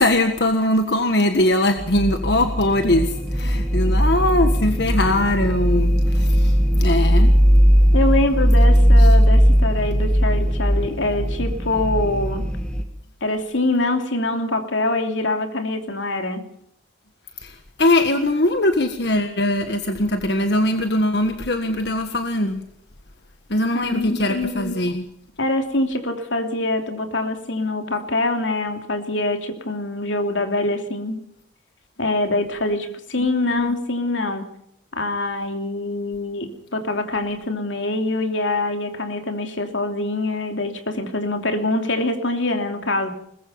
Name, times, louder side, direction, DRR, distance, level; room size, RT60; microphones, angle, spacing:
voice 1, 0.0-7.3 9.0-9.2 17.4-22.6 23.5-25.0 33.2-33.7, left 1 dB, 60° left, 6 dB, 1.6 m, -21 dB
sound 1, 1.8-12.8, equal, 5° left, 2.1 m, -18 dB
voice 2, 7.9-12.5 13.2-16.4 23.7-24.7 25.4-31.2 32.0-34.4 34.9-43.1, left 2 dB, 80° left, 5 dB, 3.0 m, -24 dB
22.0 x 20.5 x 5.6 m, 0.72 s
head